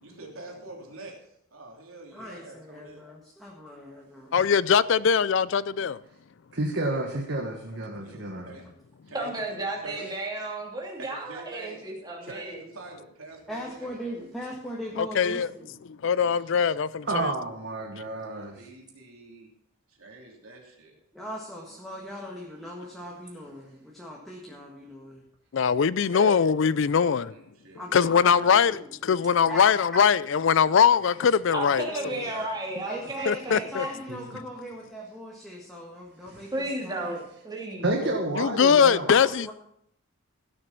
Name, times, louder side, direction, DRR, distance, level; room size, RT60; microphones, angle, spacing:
voice 1, 0.0-3.0 8.0-8.7 9.1-9.3 9.8-10.1 11.0-11.9 12.2-13.9 18.1-19.5 19.9-21.0 27.0-28.3 32.2-32.5 33.9-34.0, right 2 dB, 80° right, 3.1 m, -45 dB
voice 2, 2.1-4.3 13.5-15.7 21.1-25.2 27.7-28.9 29.4-30.0 31.9-32.1 32.8-37.2 39.1-39.5, equal, ahead, 1.6 m, -39 dB
voice 3, 4.3-6.0 15.0-15.5 15.9-17.3 25.5-27.3 27.9-31.9 33.3-33.8 38.0-39.5, left 6 dB, 60° left, 0.4 m, -22 dB
voice 4, 6.5-8.5 17.1-18.6 33.5-33.7 34.1-34.2 36.3-36.5 37.8-39.1, right 2 dB, 55° right, 1.7 m, -30 dB
voice 5, 9.1-12.6 26.1-26.3 31.5-33.9 36.5-37.9, right 2 dB, 20° right, 2.8 m, -33 dB
16.5 x 6.6 x 5.9 m
head